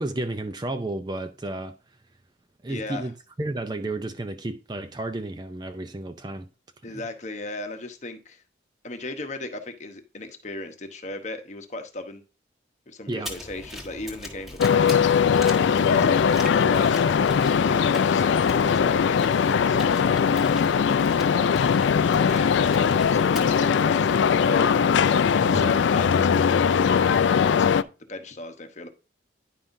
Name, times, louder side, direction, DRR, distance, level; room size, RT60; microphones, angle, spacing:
voice 1, 0.0-1.7 2.6-6.5 6.9-7.0 13.1-13.3 15.8-16.2 25.4-25.8, right 2 dB, 20° right, 0.5 m, -32 dB
voice 2, 2.7-3.1 6.8-8.4 8.8-12.2 12.9-15.2 15.7-17.2 17.6-20.5 21.2-21.6 22.0-24.7 25.3-28.9, left 2 dB, 40° left, 0.9 m, -37 dB
sound 1, 13.2-23.6, left 1 dB, ahead, 1.4 m, -40 dB
sound 2, 14.6-27.8, left 7 dB, 75° left, 0.3 m, -20 dB
10.0 x 5.5 x 2.6 m
head